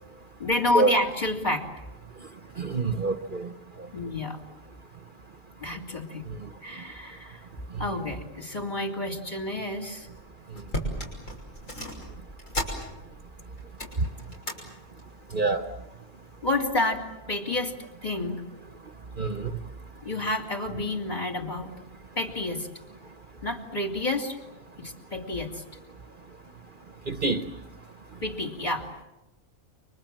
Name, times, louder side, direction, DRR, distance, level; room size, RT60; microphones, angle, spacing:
voice 1, 0.4-1.7 3.9-4.4 5.6-6.3 6.6-7.4 7.8-10.1 16.4-17.0 17.3-18.4 20.0-21.7 22.2-22.7 23.4-24.4 24.8-25.6 28.2-28.9, left 2 dB, 35° left, 3.0 m, -29 dB
voice 2, 2.6-3.5 15.3-15.6 19.2-19.4 27.1-27.4, right 3 dB, 45° right, 1.2 m, -25 dB
sound 1, 10.1-10.2 10.5-13.3 13.6-14.6 15.0-15.3 16.1-16.6 17.0-17.1, equal, 80° left, 6.5 m, -35 dB
29.5 x 25.0 x 7.6 m
omnidirectional pair, 1.3 m